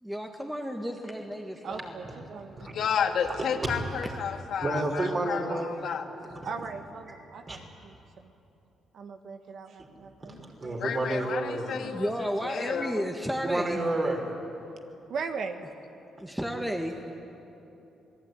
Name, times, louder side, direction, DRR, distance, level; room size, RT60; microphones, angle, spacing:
voice 1, 0.0-2.2 2.7-2.8 4.0-4.1 6.4-6.5 11.9-13.8 16.2-16.9, equal, 5° right, 3 dB, 1.9 m, -33 dB
voice 2, 1.6-2.7 4.9-6.2 6.4-7.9 8.9-10.3 10.6-10.8 15.1-15.6, right 5 dB, 60° right, 7 dB, 1.5 m, -39 dB
voice 3, 2.7-6.1 10.8-13.1, left 7 dB, 70° left, 3 dB, 2.4 m, -31 dB
voice 4, 4.6-5.9 6.2-6.3 7.5-7.6 10.2-11.9 13.4-14.2 16.5-16.7, right 2 dB, 30° right, 1 dB, 5.7 m, -31 dB
27.0 x 19.5 x 9.9 m, 3.0 s
cardioid pair, 90°, 0 cm